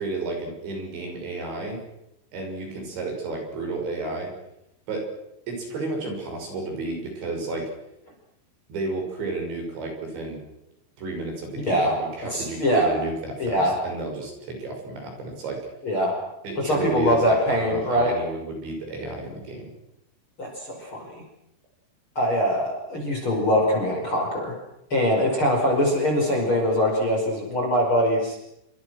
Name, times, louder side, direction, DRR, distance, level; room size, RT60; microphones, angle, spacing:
voice 1, 0.0-1.8 2.3-4.3 4.9-5.1 5.5-7.7 8.7-10.4 11.0-15.6 16.4-19.7, right 2 dB, 60° right, 2 dB, 8.9 m, -32 dB
voice 2, 12.3-12.9 13.4-13.7 15.8-16.2 16.6-18.1 20.4-21.0 22.2-24.5 24.9-28.4, equal, 25° left, 0 dB, 5.8 m, -22 dB
28.0 x 26.0 x 6.4 m, 0.84 s
omnidirectional pair, 5.8 m